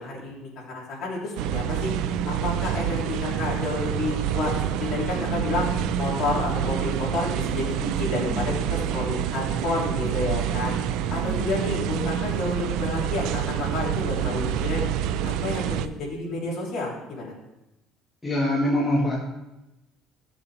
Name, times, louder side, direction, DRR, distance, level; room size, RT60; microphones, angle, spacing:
voice 1, 0.0-1.9 2.3-4.5 4.8-5.7 6.0-10.7 11.1-14.8 15.2-17.3, left 2 dB, 45° left, -5 dB, 3.3 m, -30 dB
sound 1, 1.4-15.9, right 9 dB, 70° right, 0.5 m, -27 dB
sound 2, 5.1-7.1 7.7-9.7 10.9-12.3 13.0-13.1 14.3-14.4, right 1 dB, 30° right, 1.7 m, -37 dB
voice 2, 18.2-19.2, left 1 dB, 10° left, -6 dB, 1.8 m, -23 dB
14.0 x 7.1 x 3.5 m, 0.95 s
cardioid pair, 170°, 0 cm